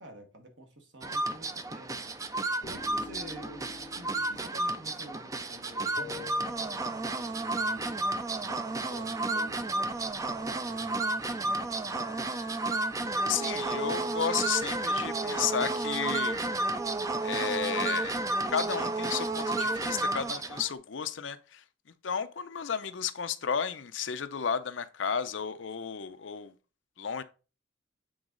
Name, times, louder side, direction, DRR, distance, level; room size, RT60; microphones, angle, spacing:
voice 1, 0.0-2.2 2.6-8.0 8.4-9.7 10.2-12.3, right 1 dB, 70° right, 1.5 m, -50 dB
sound 1, 1.0-20.7, right 2 dB, 20° right, 0.4 m, -32 dB
sound 2, 2.6-5.6 6.0-7.8 8.1-8.2 8.5-8.7 8.9-9.1 9.4-11.1 11.8-13.4 14.1-15.0, left 5 dB, 45° left, 0.6 m, -49 dB
voice 2, 13.2-16.5 17.2-18.2 18.5-21.6 22.0-26.5 27.0-27.2, left 7 dB, 85° left, 0.6 m, -33 dB
7.9 x 3.9 x 3.8 m
head